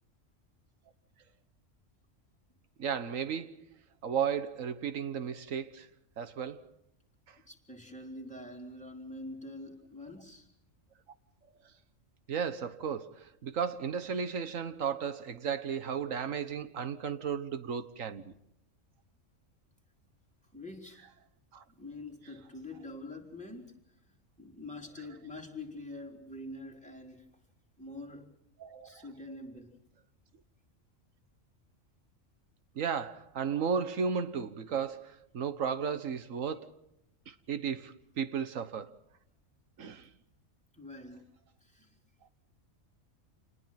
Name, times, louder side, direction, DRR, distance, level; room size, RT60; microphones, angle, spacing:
voice 1, 2.8-3.6 4.0-5.9 6.2-6.7 7.3-7.4 12.3-18.3 21.5-21.6 28.6-29.0 32.7-36.7 37.3-38.9 39.8-40.1, right 7 dB, 80° right, 1.5 m, -34 dB
voice 2, 7.4-10.5 20.5-21.1 21.8-23.8 24.4-27.3 27.8-28.3 28.8-29.8 40.7-41.2 41.6-42.0, left 2 dB, 5° left, 3.8 m, -45 dB
28.5 x 20.0 x 5.8 m
omnidirectional pair, 1.3 m